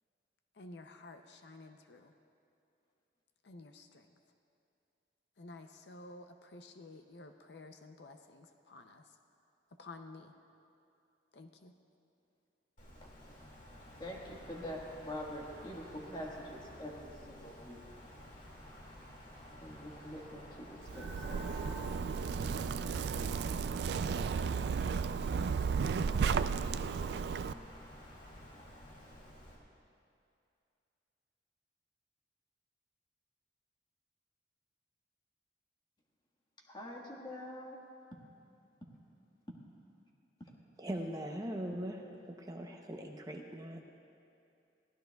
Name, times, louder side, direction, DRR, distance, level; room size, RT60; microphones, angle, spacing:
voice 1, 0.5-2.1 3.4-4.1 5.4-9.2 9.8-10.3 11.3-11.7, left 2 dB, 65° left, 7 dB, 0.6 m, -52 dB
Wind, 12.8-29.6, equal, 45° left, 2.2 m, -53 dB
voice 2, 14.0-17.8 19.6-21.8 36.7-37.8 40.4-40.5, left 1 dB, 25° left, -1 dB, 1.5 m, -45 dB
sound 1, 20.9-27.6, left 1 dB, 5° right, 1.5 m, -51 dB
Zipper (clothing), 20.9-27.5, right 6 dB, 65° right, 0.3 m, -34 dB
voice 3, 40.8-43.8, right 1 dB, 20° right, 2 dB, 0.7 m, -41 dB
22.5 x 16.0 x 2.3 m, 2.6 s
head